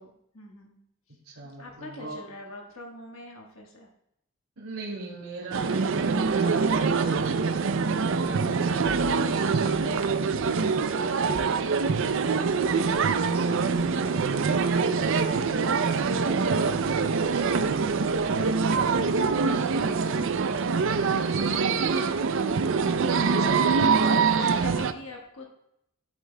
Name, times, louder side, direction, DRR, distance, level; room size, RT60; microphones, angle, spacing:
voice 1, 0.0-1.2 1.4-3.9 9.1-9.6 12.5-13.4 23.7-25.5, left 2 dB, 65° left, 0 dB, 1.4 m, -45 dB
voice 2, 1.2-2.2 4.6-7.7 8.0-11.5 11.8-12.4 12.9-14.2 15.1-20.1 20.8-21.4 23.4-24.1, right 2 dB, 80° right, -6 dB, 2.4 m, -39 dB
sound 1, 5.5-24.9, right 5 dB, 60° right, 0.5 m, -24 dB
11.0 x 8.3 x 2.2 m, 0.76 s
head